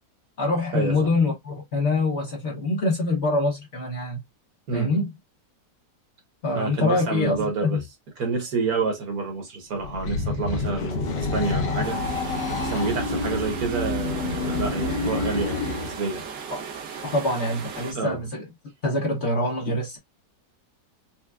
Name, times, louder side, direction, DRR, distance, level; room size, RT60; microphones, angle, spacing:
voice 1, 0.4-4.2 4.7-5.1 6.4-7.8 16.5-16.6 17.0-18.4 18.8-20.0, left 2 dB, 50° left, 0.9 m, -25 dB
voice 2, 6.5-7.8 8.2-12.0 12.4-16.2 17.9-18.3, right 4 dB, 60° right, 1.5 m, -28 dB
sound 1, 9.7-16.0, left 3 dB, 75° left, 1.5 m, -28 dB
sound 2, 11.8-17.9, right 6 dB, 85° right, 1.6 m, -37 dB
4.5 x 2.2 x 2.3 m
omnidirectional pair, 1.9 m